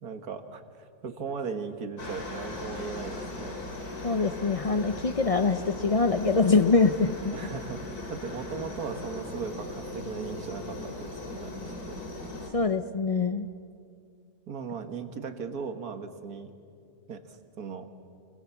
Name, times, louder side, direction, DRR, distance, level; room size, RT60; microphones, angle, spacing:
voice 1, 0.0-3.6 7.3-11.6 11.9-12.0 14.5-16.5 17.1-17.9, right 5 dB, 75° right, 7 dB, 2.0 m, -37 dB
Aircraft, 2.0-12.5, left 2 dB, 80° left, 3.2 m, -38 dB
voice 2, 4.0-7.3 12.5-13.5, left 4 dB, 55° left, 10 dB, 0.4 m, -24 dB
28.0 x 21.5 x 7.1 m, 2.4 s
omnidirectional pair, 1.6 m